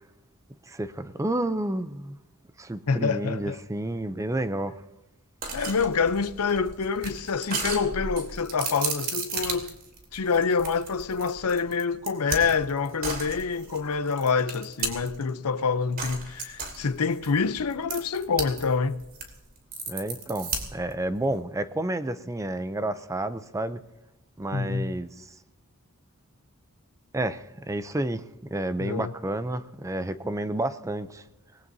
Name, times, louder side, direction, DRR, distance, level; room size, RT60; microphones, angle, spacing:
voice 1, 0.6-2.2 2.6-4.8 19.9-23.8 24.4-25.3 27.1-28.2 28.5-31.2, right 1 dB, 15° right, 0.5 m, -30 dB
voice 2, 2.9-3.6 5.5-9.7 10.1-19.0 24.5-24.9 28.8-29.1, left 5 dB, 85° left, 0.7 m, -26 dB
sound 1, 5.4-15.3 16.0-18.6 18.9-20.9, right 4 dB, 45° right, 2.8 m, -34 dB
26.0 x 20.0 x 2.7 m
head